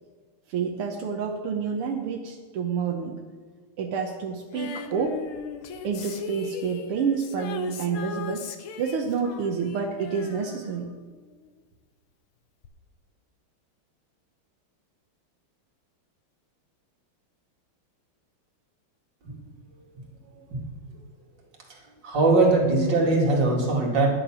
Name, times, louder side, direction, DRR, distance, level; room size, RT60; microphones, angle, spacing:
voice 1, 0.5-3.2 3.8-5.2 5.8-8.5 8.8-10.9, right 6 dB, 85° right, 2 dB, 1.9 m, -28 dB
Female singing, 4.5-11.5 12.6-12.7, left 6 dB, 75° left, 1.8 m, -39 dB
voice 2, 22.0-24.1, right 2 dB, 55° right, -1 dB, 3.0 m, -21 dB
11.0 x 9.9 x 6.2 m, 1.5 s
omnidirectional pair, 2.4 m